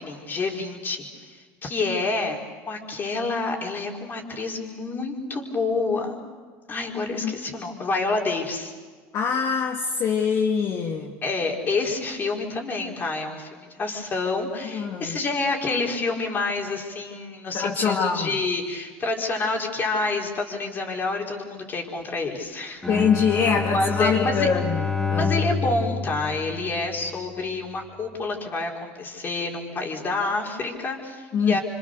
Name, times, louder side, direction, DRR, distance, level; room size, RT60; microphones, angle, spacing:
voice 1, 0.0-2.4 2.7-6.2 6.7-8.7 11.2-22.9 23.7-24.5 25.2-31.6, left 3 dB, 30° left, 0 dB, 5.2 m, -28 dB
voice 2, 9.1-11.1 14.7-15.2 17.5-18.4 22.9-25.3 31.3-31.6, left 6 dB, 45° left, 1 dB, 2.3 m, -24 dB
Bowed string instrument, 22.8-27.2, left 4 dB, 10° left, 2.6 m, -28 dB
28.5 x 25.5 x 6.8 m, 1.5 s
supercardioid pair, 110°, 7 cm